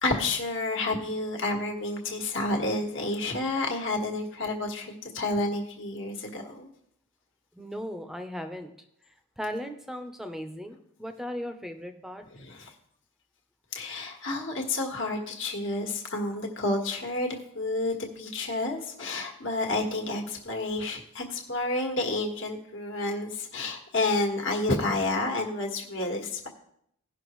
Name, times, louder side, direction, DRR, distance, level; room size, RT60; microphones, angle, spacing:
voice 1, 0.0-6.7 12.3-12.7 13.7-26.5, left 2 dB, 55° left, 1 dB, 1.6 m, -30 dB
voice 2, 7.5-8.7 9.4-12.2, equal, ahead, 7 dB, 0.7 m, -37 dB
17.5 x 5.9 x 3.1 m, 0.72 s
head